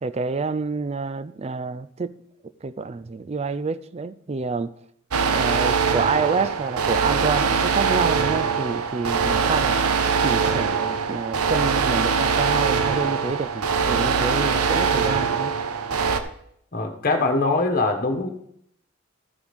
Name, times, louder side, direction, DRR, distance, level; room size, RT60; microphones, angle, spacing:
voice 1, 0.0-2.2 2.6-4.7 5.3-9.8 10.2-15.5, right 4 dB, 30° right, 0.4 m, -28 dB
sound 1, 5.1-16.2, right 5 dB, 80° right, 0.8 m, -22 dB
voice 2, 16.7-18.3, left 3 dB, 40° left, 1.3 m, -22 dB
14.0 x 4.9 x 5.3 m
head